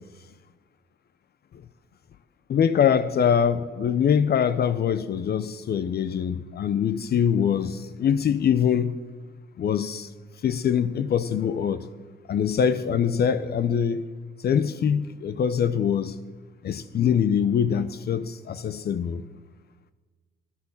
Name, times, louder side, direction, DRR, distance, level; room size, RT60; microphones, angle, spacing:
voice 1, 2.5-8.9 9.6-10.1 10.4-11.8 12.3-14.0 14.4-16.1 16.6-19.2, left 8 dB, 55° left, 0.6 m, -23 dB
12.0 x 9.9 x 7.1 m
cardioid pair, 90°, 20 cm